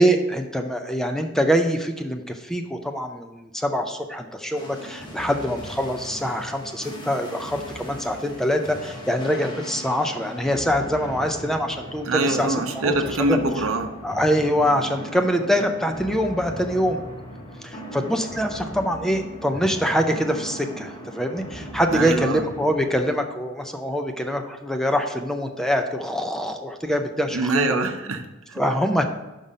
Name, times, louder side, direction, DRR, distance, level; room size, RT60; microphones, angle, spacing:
voice 1, 0.0-12.9 13.2-13.4 14.0-17.0 17.6-27.7 28.6-29.0, equal, ahead, 5 dB, 0.4 m, -24 dB
sound 1, 4.6-23.1, equal, 20° left, 1.2 m, -38 dB
voice 2, 12.0-13.9 21.9-22.4 27.3-28.6, right 2 dB, 75° right, 7 dB, 0.7 m, -24 dB
5.6 x 5.3 x 5.0 m, 1.1 s
head